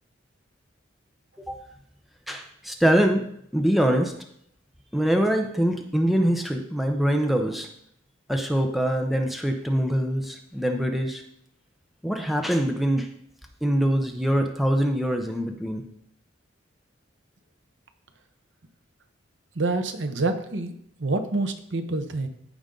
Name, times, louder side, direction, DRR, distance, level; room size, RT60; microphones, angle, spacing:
voice 1, 2.3-3.2 3.5-4.1 4.9-7.7 8.3-11.2 12.0-13.1 13.6-15.8, equal, ahead, 3 dB, 0.7 m, -23 dB
voice 2, 19.6-20.7 21.0-22.3, right 2 dB, 75° right, 8 dB, 0.9 m, -27 dB
14.5 x 5.2 x 3.8 m, 0.71 s
head